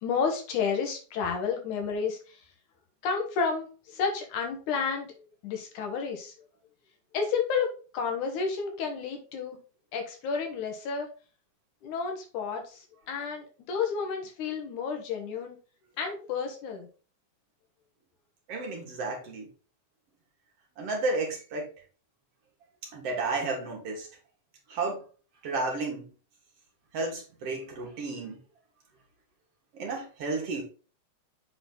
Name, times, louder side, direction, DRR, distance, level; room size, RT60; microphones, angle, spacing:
voice 1, 0.0-2.4 3.0-6.3 7.1-9.6 9.9-11.1 11.8-15.6 16.0-16.9, left 5 dB, 85° left, 3 dB, 2.9 m, -31 dB
voice 2, 18.5-19.5 20.8-21.7 22.9-24.1 24.7-25.0 25.4-26.1 26.9-28.4 29.7-30.6, right 3 dB, 55° right, 0 dB, 2.6 m, -32 dB
7.9 x 4.0 x 3.9 m, 0.36 s
omnidirectional pair, 3.4 m